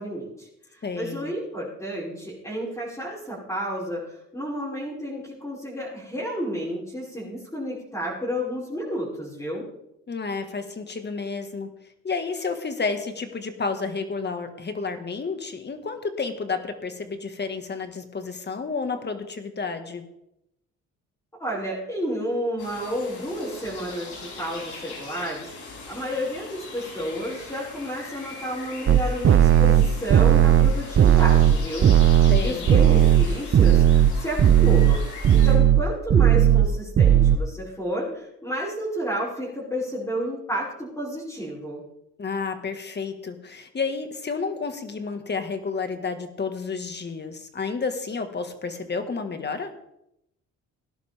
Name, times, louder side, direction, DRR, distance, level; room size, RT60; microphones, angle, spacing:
voice 1, 0.0-9.7 21.4-31.9 32.1-35.0 35.3-41.8, equal, 10° left, -10 dB, 5.6 m, -31 dB
voice 2, 0.8-1.3 10.1-11.7 12.0-20.0 32.3-32.7 42.2-49.7, left 4 dB, 35° left, 7 dB, 1.8 m, -31 dB
sound 1, 22.6-35.5, left 3 dB, 80° left, 6.4 m, -40 dB
sound 2, 28.9-34.1 34.4-35.0 35.2-35.8 36.1-36.7 37.0-37.4, right 10 dB, 45° right, 0.7 m, -16 dB
18.0 x 11.5 x 3.6 m, 0.81 s
cardioid pair, 90°, 30 cm